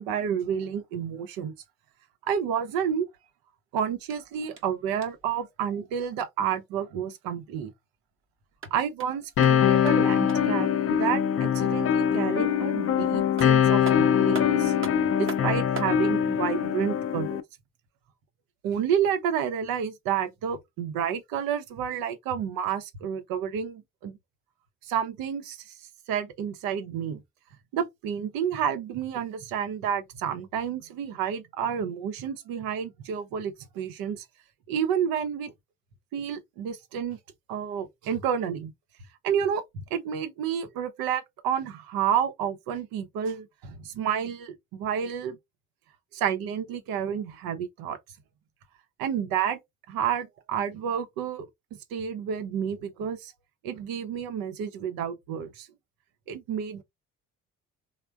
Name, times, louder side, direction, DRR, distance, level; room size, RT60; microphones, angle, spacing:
voice 1, 0.0-1.5 2.2-3.1 3.7-7.7 8.7-14.7 15.2-17.4 18.6-24.2 24.8-25.8 26.1-27.2 27.7-34.2 34.7-35.5 36.1-37.2 37.5-38.7 39.2-45.4 46.1-48.0 49.0-49.6 49.9-51.5 51.9-53.3 53.6-55.7 56.3-56.8, right 8 dB, 70° right, 0.7 m, -30 dB
sound 1, 4.0-5.4 8.4-10.6 12.9-13.0 13.4-16.0, right 5 dB, 35° right, 0.8 m, -42 dB
sound 2, 9.4-17.4, left 9 dB, 40° left, 0.5 m, -23 dB
3.3 x 2.1 x 2.3 m
hypercardioid pair, 55°, 36 cm